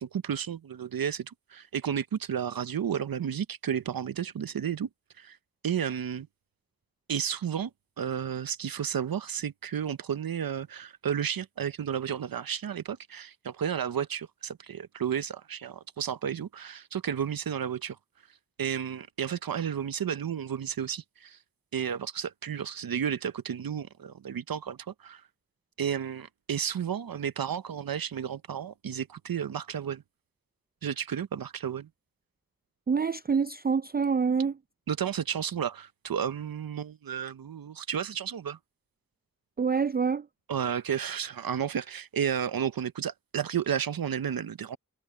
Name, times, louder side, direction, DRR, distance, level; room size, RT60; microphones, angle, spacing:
voice 1, 0.0-4.9 5.2-5.4 5.6-6.3 7.1-7.7 8.0-18.0 18.6-21.4 21.7-24.8 25.0-25.2 25.8-30.0 30.8-31.9 34.9-38.6 40.5-44.8, right 8 dB, 80° right, 0.6 m, -32 dB
voice 2, 32.9-34.6 39.6-40.3, right 5 dB, 30° right, 0.4 m, -26 dB
cardioid pair, 45°, 34 cm